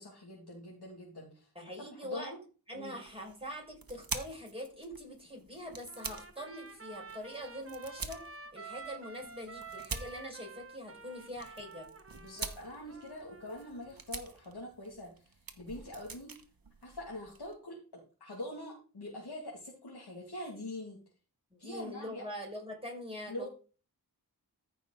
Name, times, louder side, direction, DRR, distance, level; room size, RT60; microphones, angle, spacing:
voice 1, 0.0-1.5 1.8-2.4 2.7-3.0 12.2-16.3 16.8-21.0 21.6-22.2 23.3-23.5, left 1 dB, 80° left, -4 dB, 2.3 m, -44 dB
voice 2, 1.5-2.3 2.7-8.2 8.5-11.9 21.5-23.5, equal, 15° right, -1 dB, 5.1 m, -43 dB
sound 1, 3.0-17.5, right 4 dB, 60° right, 1.2 m, -46 dB
Trumpet, 5.9-14.0, right 4 dB, 35° right, 1.3 m, -50 dB
14.0 x 5.5 x 3.9 m, 0.38 s
wide cardioid pair, 45°, 39 cm